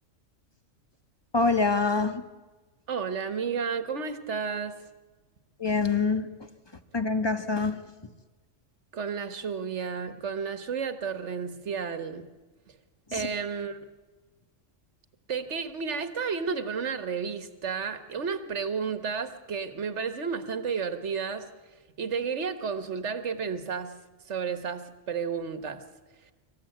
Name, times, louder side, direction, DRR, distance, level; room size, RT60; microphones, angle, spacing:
voice 1, 1.3-2.2 5.6-6.3 6.9-7.7 13.1-13.3, left 4 dB, 20° left, 8 dB, 1.5 m, -25 dB
voice 2, 2.9-4.8 8.9-12.3 13.1-13.8 15.3-23.9 24.3-25.8 26.2-26.3, right 6 dB, 65° right, 10 dB, 1.8 m, -32 dB
26.0 x 15.0 x 9.3 m, 1.2 s
omnidirectional pair, 1.3 m